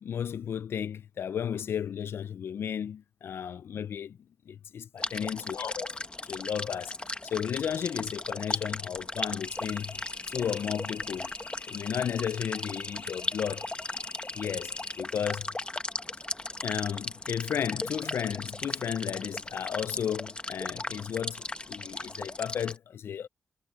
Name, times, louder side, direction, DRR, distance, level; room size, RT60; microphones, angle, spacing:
voice 1, 0.0-4.2 4.5-7.0 7.2-9.9 10.3-11.3 11.7-13.7 14.3-15.5 16.6-23.3, left 8 dB, 80° left, 0.5 m, -34 dB
sound 1, 5.0-22.8, left 2 dB, 25° left, 1.3 m, -37 dB
sound 2, 9.4-15.0, left 4 dB, 55° left, 4.1 m, -46 dB
supercardioid pair, 45°, 4 cm